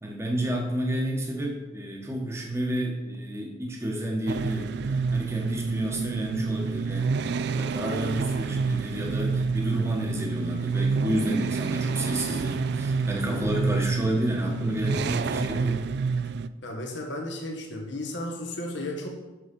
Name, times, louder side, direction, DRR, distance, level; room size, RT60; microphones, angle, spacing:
voice 1, 0.0-15.9, right 1 dB, 15° right, 0 dB, 1.3 m, -30 dB
sound 1, 4.3-16.5, right 4 dB, 60° right, 0.3 m, -28 dB
voice 2, 16.6-19.1, left 1 dB, 65° left, 1 dB, 1.5 m, -34 dB
6.7 x 6.5 x 5.3 m, 1.1 s
head